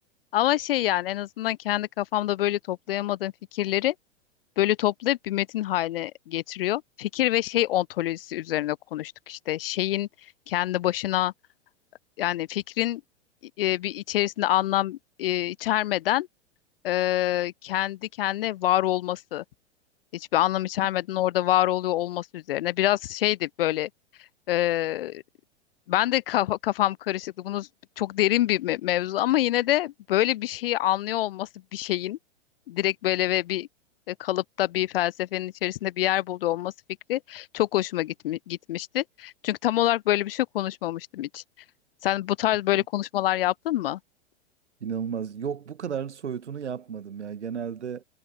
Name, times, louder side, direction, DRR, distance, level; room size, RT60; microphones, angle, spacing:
voice 1, 0.3-3.9 4.6-10.1 10.5-11.3 12.2-13.0 13.6-16.3 16.8-19.4 20.1-23.9 24.5-25.2 25.9-27.7 28.0-32.2 32.7-33.7 34.1-36.7 37.1-41.4 42.0-44.0, left 14 dB, 55° left, 0.4 m, -26 dB
voice 2, 44.8-48.0, right 7 dB, 75° right, 1.2 m, -33 dB
figure-of-eight pair, 105°, 34 cm